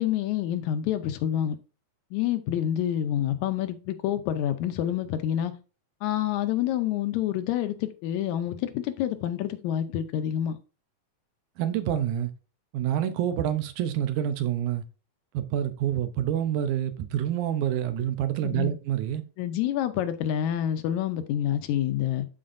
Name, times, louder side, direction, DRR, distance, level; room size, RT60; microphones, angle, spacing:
voice 1, 0.0-1.6 2.1-5.5 6.0-10.6 18.4-18.7 19.4-22.3, left 11 dB, 80° left, 2.0 m, -27 dB
voice 2, 11.6-12.3 12.7-14.8 15.3-19.2, right 10 dB, 85° right, 2.2 m, -27 dB
12.5 x 4.3 x 2.6 m
omnidirectional pair, 3.4 m